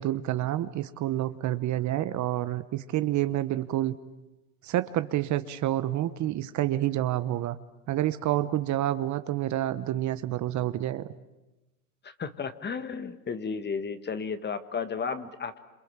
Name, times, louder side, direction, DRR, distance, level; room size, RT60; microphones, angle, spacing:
voice 1, 0.0-3.9 4.6-7.6 7.9-11.0, right 13 dB, 40° right, 13 dB, 1.1 m, -28 dB
voice 2, 12.0-15.6, left 5 dB, 20° left, 11 dB, 1.6 m, -33 dB
27.5 x 26.5 x 7.4 m, 1.0 s
supercardioid pair, 110°, 46 cm